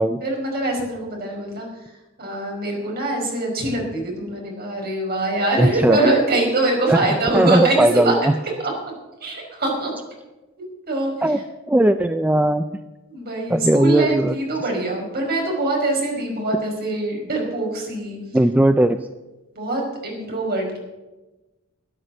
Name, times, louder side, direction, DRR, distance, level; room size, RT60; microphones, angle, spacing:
voice 1, 0.2-1.7 2.2-8.1 8.6-8.7 9.2-9.9 10.6-11.1 13.1-18.2 19.5-20.8, right 2 dB, 45° right, 0 dB, 5.0 m, -23 dB
voice 2, 5.6-6.0 6.9-7.0 7.3-8.3 11.2-11.4 11.7-12.6 13.5-14.4 18.3-19.0, right 1 dB, 5° right, 9 dB, 0.4 m, -17 dB
13.5 x 9.9 x 7.7 m, 1.1 s
head